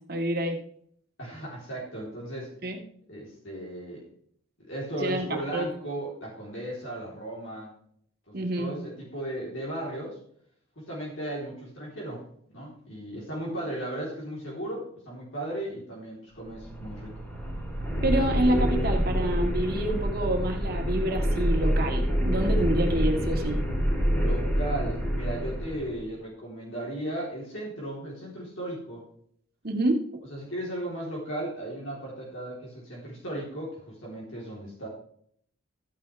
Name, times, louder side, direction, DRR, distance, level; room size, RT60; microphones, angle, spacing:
voice 1, 0.1-0.6 2.6-2.8 5.0-5.7 8.3-8.7 18.0-23.6 29.6-30.2, right 1 dB, 45° right, 3 dB, 2.0 m, -28 dB
voice 2, 1.2-2.5 3.1-4.0 4.7-7.7 8.3-10.2 10.8-12.2 12.5-17.1 24.2-29.0 30.3-34.9, right 1 dB, 60° left, -5 dB, 3.6 m, -36 dB
sound 1, 16.4-26.0, equal, 10° left, 3.5 m, -27 dB
14.0 x 9.6 x 3.4 m, 0.64 s
head